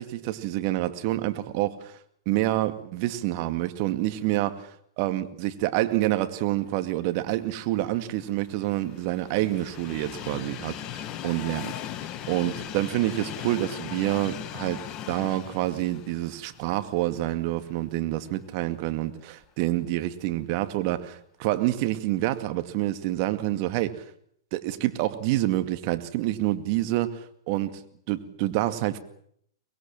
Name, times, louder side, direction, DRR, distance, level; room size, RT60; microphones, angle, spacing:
voice 1, 0.0-2.0 2.3-11.7 12.3-24.1 24.5-27.8 28.1-29.0, right 15 dB, 45° right, 10 dB, 2.2 m, -27 dB
Train, 7.7-17.8 18.2-18.3 19.4-19.5, left 11 dB, 30° left, 1.6 m, -39 dB
24.5 x 21.0 x 7.6 m, 0.67 s
hypercardioid pair, 110°, 2 cm